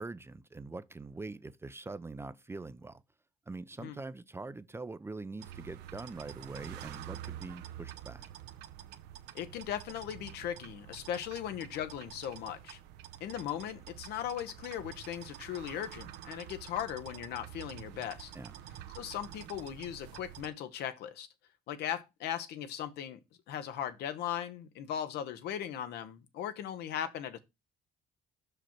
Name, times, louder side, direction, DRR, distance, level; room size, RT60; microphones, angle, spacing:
voice 1, 0.0-3.0 3.5-8.3 18.3-18.5, right 3 dB, 15° right, 0.4 m, -43 dB
sound 1, 5.4-20.5, right 11 dB, 90° right, 0.7 m, -48 dB
voice 2, 9.3-12.8 13.2-18.3 19.0-21.3 21.7-23.2 23.5-27.4, left 10 dB, 75° left, 0.9 m, -38 dB
5.7 x 5.0 x 4.4 m
cardioid pair, 110°, 17 cm